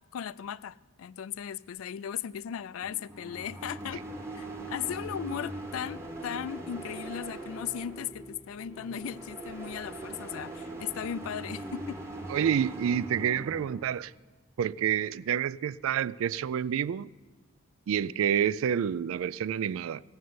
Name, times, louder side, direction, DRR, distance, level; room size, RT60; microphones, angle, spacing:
voice 1, 0.1-4.1 4.3-12.0, left 9 dB, 80° left, 0.3 m, -37 dB
sound 1, 2.8-13.9, right 1 dB, 10° right, 1.0 m, -41 dB
voice 2, 12.3-14.1 14.6-17.1 17.9-20.0, right 9 dB, 75° right, 0.3 m, -28 dB
16.0 x 6.4 x 9.4 m
head